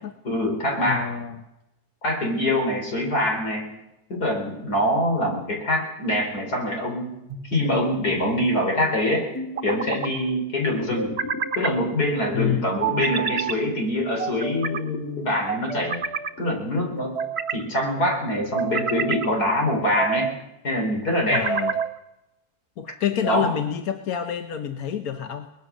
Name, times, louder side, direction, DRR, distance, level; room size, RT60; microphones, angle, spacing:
voice 1, 0.2-1.1 2.0-3.7 4.1-7.1 7.5-9.3 9.6-11.2 11.6-16.0 16.4-17.2 17.5-20.3 20.6-21.5 23.2-23.5, left 1 dB, 90° left, 2 dB, 4.9 m, -24 dB
voice 2, 0.9-1.4 12.3-12.7 21.3-21.7 22.8-25.5, left 9 dB, 70° left, 7 dB, 1.4 m, -28 dB
sound 1, 7.3-8.0 9.3-10.1 11.0-11.8 12.8-13.6 14.2-14.8 15.5-16.3 17.0-17.6 18.4-19.3 19.8-20.4 21.1-21.9, right 6 dB, 45° right, 1.3 m, -28 dB
sound 2, 9.9-14.2 14.6-16.4, left 3 dB, 45° left, 3.1 m, -42 dB
22.0 x 20.0 x 6.3 m, 0.93 s
omnidirectional pair, 1.6 m